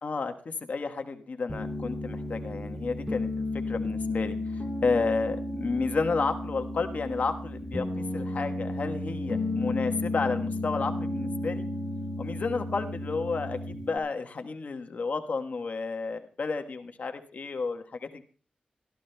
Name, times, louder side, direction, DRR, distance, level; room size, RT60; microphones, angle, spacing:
voice 1, 0.0-3.3 3.7-11.6 12.2-18.2, left 4 dB, 60° left, 6 dB, 1.2 m, -31 dB
Piano, 1.5-14.0, left 2 dB, ahead, 2.6 m, -33 dB
28.0 x 14.0 x 2.2 m, 0.38 s
wide cardioid pair, 85°, 3 cm